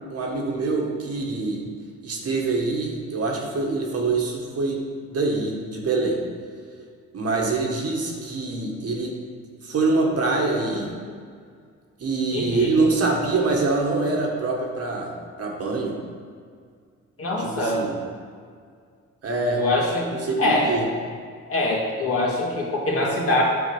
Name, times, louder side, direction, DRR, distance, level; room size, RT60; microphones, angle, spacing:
voice 1, 0.1-1.6 2.0-4.8 5.1-6.2 7.1-9.1 9.6-10.9 12.0-15.1 15.4-16.0 17.4-18.0 19.2-19.6 20.1-20.9, right 3 dB, 55° right, -1 dB, 1.8 m, -24 dB
voice 2, 12.3-12.7 17.2-17.8 19.6-20.8 21.5-23.4, left 2 dB, 50° left, -3 dB, 2.3 m, -24 dB
9.8 x 4.7 x 6.2 m, 2.1 s
cardioid pair, 90°, 30 cm